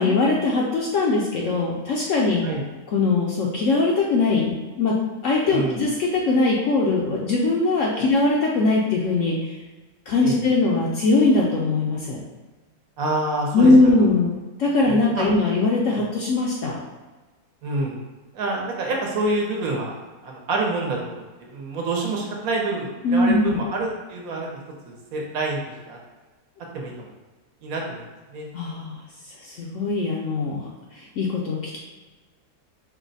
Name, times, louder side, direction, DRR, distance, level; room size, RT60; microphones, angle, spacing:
voice 1, 0.0-2.4 2.9-4.9 5.2-9.6 10.1-12.2 13.5-14.3 14.6-16.8 23.0-23.6 28.5-29.0 29.4-31.8, left 3 dB, 65° left, -2 dB, 0.8 m, -21 dB
voice 2, 5.4-5.8 7.9-8.0 10.2-10.4 13.0-13.7 14.8-15.3 17.6-18.0 18.3-19.9 20.2-21.2 21.5-24.5 24.8-25.6 25.9-26.0 26.7-27.1 27.6-28.5, right 2 dB, 70° right, -1 dB, 1.1 m, -27 dB
4.7 x 2.1 x 3.9 m, 1.3 s
omnidirectional pair, 1.7 m